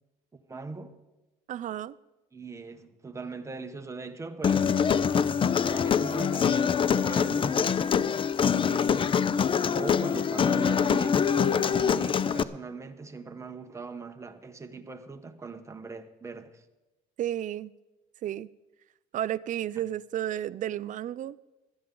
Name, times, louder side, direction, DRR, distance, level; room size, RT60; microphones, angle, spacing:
voice 1, 0.3-1.0 2.3-4.8 5.6-7.6 8.3-9.2 9.7-16.6, right 4 dB, 15° right, 1.0 m, -40 dB
voice 2, 1.5-2.0 17.2-17.7 18.2-18.5 19.1-21.4, right 12 dB, 50° right, 0.4 m, -32 dB
Human voice, 4.4-12.4, left 7 dB, 30° left, 0.4 m, -24 dB
16.0 x 12.5 x 3.8 m
cardioid pair, 110°, 17 cm